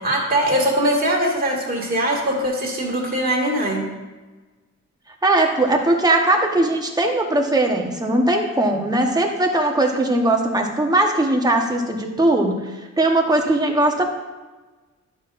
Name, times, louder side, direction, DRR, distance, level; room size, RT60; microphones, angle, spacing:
voice 1, 0.0-3.9, right 1 dB, 30° right, -3 dB, 2.0 m, -21 dB
voice 2, 5.2-12.6 13.0-14.0, right 1 dB, 15° right, 1 dB, 1.0 m, -19 dB
12.0 x 6.1 x 2.5 m, 1.2 s
wide cardioid pair, 140°, 30 cm